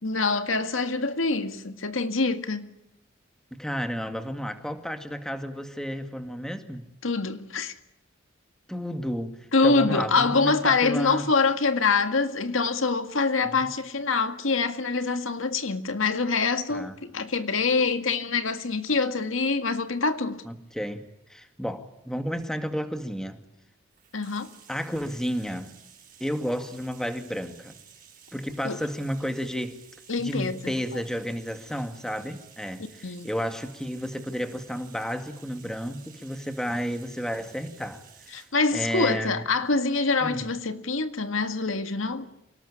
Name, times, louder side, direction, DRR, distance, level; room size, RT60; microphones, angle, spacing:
voice 1, 0.0-2.7 7.0-7.7 9.5-20.4 24.1-24.5 28.6-28.8 30.1-31.0 33.0-33.3 38.3-42.3, left 4 dB, 80° left, 1.9 m, -25 dB
voice 2, 3.5-6.9 8.7-9.4 9.6-11.3 13.5-13.7 16.7-16.9 20.5-21.0 21.3-23.4 24.7-25.7 26.2-27.8 28.3-29.8 30.2-38.0 38.3-38.4 38.7-39.4 40.2-40.5, equal, 5° left, 2.2 m, -32 dB
Bathtub (filling or washing), 23.9-38.6, right 8 dB, 45° right, 6.3 m, -53 dB
28.0 x 18.5 x 10.0 m
head